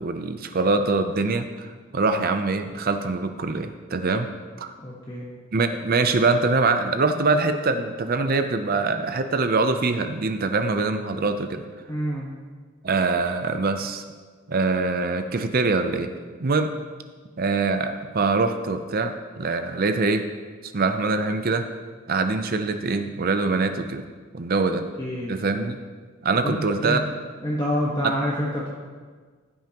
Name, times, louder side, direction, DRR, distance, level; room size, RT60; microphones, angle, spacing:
voice 1, 0.0-4.3 4.6-4.7 5.5-11.6 12.8-14.0 14.5-16.1 16.4-16.7 17.4-20.2 20.7-21.6 22.1-24.0 24.3-24.8 25.3-25.8 26.2-27.0 28.0-28.2, right 3 dB, 40° right, 8 dB, 0.5 m, -23 dB
voice 2, 4.8-5.3 11.9-12.3 25.0-25.4 26.4-27.0 27.4-28.7, equal, 20° left, -5 dB, 1.2 m, -27 dB
15.5 x 9.2 x 2.9 m, 1.5 s
head